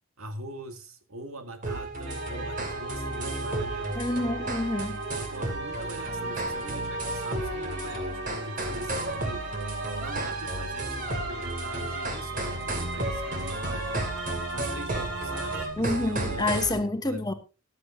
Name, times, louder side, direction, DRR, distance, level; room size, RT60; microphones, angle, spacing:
voice 1, 0.2-4.1 5.1-9.6 10.0-14.2 14.5-17.3, right 1 dB, 85° right, 1.8 m, -42 dB
sound 1, 1.6-16.8, right 2 dB, 40° right, 2.6 m, -33 dB
sound 2, 2.1-15.7, right 2 dB, 60° right, 2.1 m, -38 dB
voice 2, 3.9-5.0 15.8-17.3, left 2 dB, 20° left, 1.1 m, -28 dB
14.0 x 11.5 x 2.7 m
head